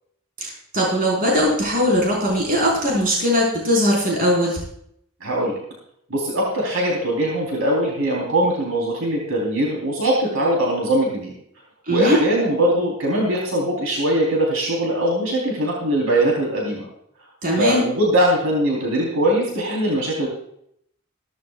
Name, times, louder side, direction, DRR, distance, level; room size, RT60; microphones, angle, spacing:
voice 1, 0.4-4.6 11.9-12.2 17.4-17.8, equal, 45° right, -3 dB, 5.1 m, -20 dB
voice 2, 5.2-5.6 6.1-11.3 11.9-16.9 17.6-20.3, right 1 dB, 75° right, -2 dB, 3.9 m, -21 dB
16.0 x 14.5 x 2.4 m, 0.70 s
head